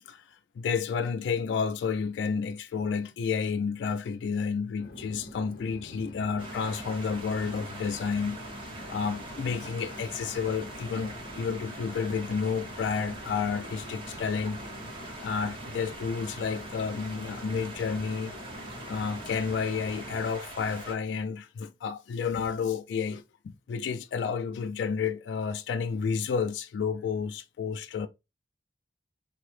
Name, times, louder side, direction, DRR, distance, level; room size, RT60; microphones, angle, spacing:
voice 1, 0.0-8.4 8.9-18.4 18.9-28.1, left 5 dB, 80° left, 0.3 m, -31 dB
Chatter / Fixed-wing aircraft airplane, 4.8-20.2, left 1 dB, 55° left, 0.7 m, -45 dB
sound 1, 6.4-20.9, right 2 dB, 30° right, 0.7 m, -43 dB
3.6 x 2.0 x 3.0 m
head